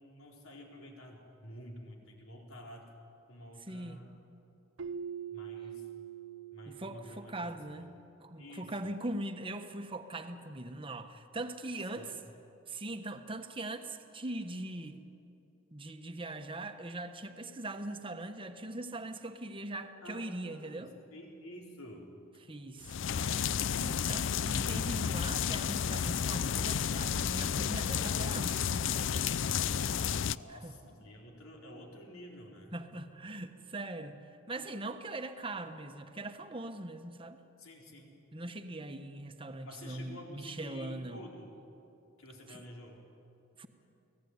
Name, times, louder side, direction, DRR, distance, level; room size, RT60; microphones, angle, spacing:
voice 1, 0.0-2.9 3.3-4.1 5.3-5.9 6.5-7.5 7.7-7.9 8.4-8.7 12.0-12.2 20.0-22.2 30.3-32.8 37.6-38.2 39.6-41.6 42.2-43.1, equal, 80° left, 0 dB, 4.3 m, -50 dB
voice 2, 3.6-4.0 6.7-12.1 12.7-15.0 15.7-20.9 22.5-23.0 23.7-29.0 30.5-30.8 32.7-37.4 38.3-41.2 42.5-42.6 43.6-43.7, right 2 dB, 25° right, 7 dB, 1.2 m, -41 dB
Keyboard (musical), 4.8-7.6, right 8 dB, 65° right, 0.7 m, -43 dB
sound 1, 22.8-30.4, left 7 dB, 60° left, 0.5 m, -32 dB
29.5 x 18.5 x 9.6 m, 3.0 s
head